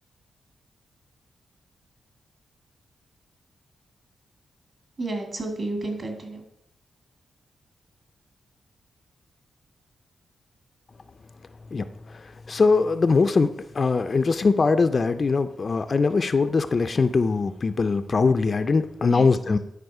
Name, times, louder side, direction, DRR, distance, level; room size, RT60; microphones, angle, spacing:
voice 1, 5.0-6.4 19.0-19.6, right 2 dB, 45° right, 3 dB, 2.1 m, -32 dB
voice 2, 11.7-19.6, left 4 dB, 40° left, 10 dB, 0.4 m, -22 dB
10.5 x 4.9 x 4.8 m, 0.78 s
wide cardioid pair, 120°, 0 cm